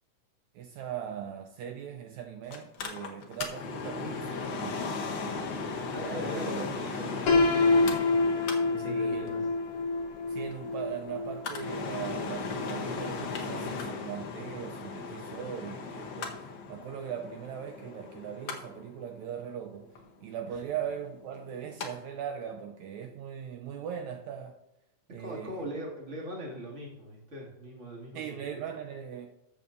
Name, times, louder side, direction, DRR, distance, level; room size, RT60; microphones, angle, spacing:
voice 1, 0.6-4.8 6.3-6.7 8.8-9.5 10.3-19.9 20.2-24.6 25.1-25.7 28.2-29.3, right 8 dB, 80° right, 1.8 m, -39 dB
Mechanical fan, 2.5-21.9 22.2-22.3, left 4 dB, 85° left, 1.0 m, -38 dB
voice 2, 5.9-8.2 8.7-9.4 20.5-20.6 25.1-28.2 28.5-28.6, equal, 25° right, 2.1 m, -40 dB
Piano, 7.3-13.1, left 3 dB, 65° left, 1.7 m, -27 dB
13.5 x 7.1 x 2.6 m
omnidirectional pair, 3.5 m